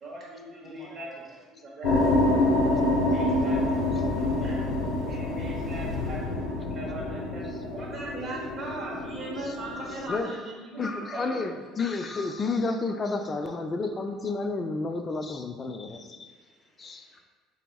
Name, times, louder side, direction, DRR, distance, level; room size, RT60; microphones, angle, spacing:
voice 1, 0.0-1.1 1.6-1.9 3.1-3.6 4.1-4.6 5.0-7.4 7.7-11.5, right 2 dB, 35° right, -3 dB, 1.0 m, -39 dB
voice 2, 0.6-1.4 2.7-3.1 16.3-17.2, equal, 5° left, -4 dB, 1.0 m, -50 dB
sound 1, 1.8-10.2, left 1 dB, 70° left, 0.9 m, -27 dB
voice 3, 10.8-16.3 16.8-17.2, left 3 dB, 25° left, 5 dB, 0.3 m, -31 dB
4.1 x 3.5 x 2.3 m, 1.4 s
cardioid pair, 125°, 0 cm